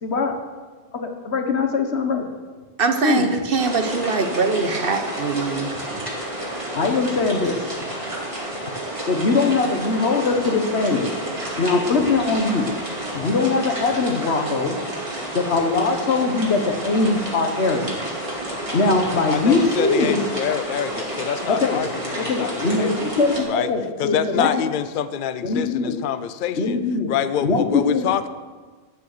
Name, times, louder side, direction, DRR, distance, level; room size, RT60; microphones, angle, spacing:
voice 1, 0.0-0.3 0.9-2.2 3.0-3.3 6.7-7.6 9.1-11.1 11.6-12.7 13.1-14.8 15.3-18.0 18.7-20.3 21.5-21.8 22.3-24.6 25.4-25.9 26.6-27.1 27.4-28.1, left 3 dB, 85° left, 5 dB, 1.6 m, -21 dB
voice 2, 2.8-5.7 15.1-15.3, right 4 dB, 60° right, 7 dB, 1.3 m, -23 dB
sound 1, 3.6-23.4, right 1 dB, 30° right, 2.5 m, -30 dB
voice 3, 19.3-23.7 24.0-26.8 27.1-28.3, left 9 dB, 55° left, 13 dB, 0.7 m, -26 dB
12.0 x 9.1 x 6.7 m, 1.4 s
omnidirectional pair, 1.1 m